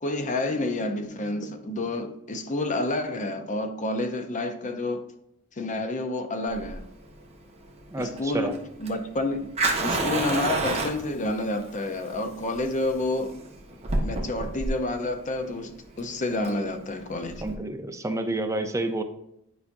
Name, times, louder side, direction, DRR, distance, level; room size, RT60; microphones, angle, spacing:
voice 1, 0.0-5.1 5.6-6.8 8.0-9.5 9.8-13.4 14.0-17.4, left 2 dB, 35° left, 0.7 m, -29 dB
Fire, 6.5-17.5, right 2 dB, 30° right, 1.3 m, -31 dB
voice 2, 7.9-8.5 17.4-19.0, right 2 dB, 15° right, 0.6 m, -29 dB
9.7 x 5.0 x 2.6 m
head